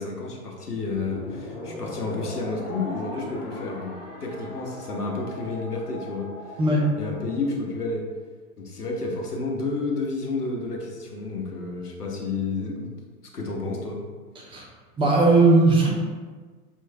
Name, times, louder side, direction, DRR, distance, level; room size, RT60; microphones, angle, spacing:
voice 1, 0.0-6.6 7.0-8.0 8.6-12.9 13.3-14.0, left 3 dB, 80° left, 0 dB, 0.9 m, -30 dB
sound 1, 0.9-7.5, left 2 dB, 35° left, 1.2 m, -39 dB
voice 2, 15.0-15.9, right 2 dB, 10° right, -3 dB, 0.6 m, -17 dB
5.3 x 3.1 x 2.2 m, 1.5 s
figure-of-eight pair, 95°, 45 cm